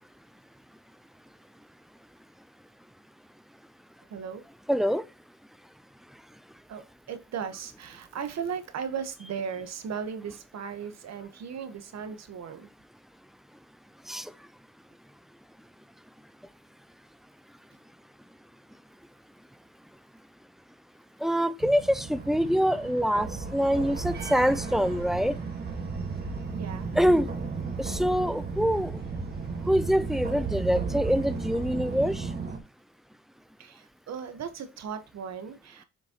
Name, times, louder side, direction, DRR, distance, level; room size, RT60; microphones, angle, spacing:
voice 1, 4.1-4.4 6.7-12.7 26.5-26.9 33.6-35.8, right 7 dB, 60° right, 1.3 m, -37 dB
voice 2, 4.7-5.0 14.1-14.3 21.2-25.3 26.9-27.3 27.8-29.0 29.7-32.3, equal, ahead, 0.5 m, -25 dB
sound 1, 21.6-32.6, right 4 dB, 35° right, 1.8 m, -34 dB
7.2 x 5.3 x 3.0 m
cardioid pair, 90°, 30 cm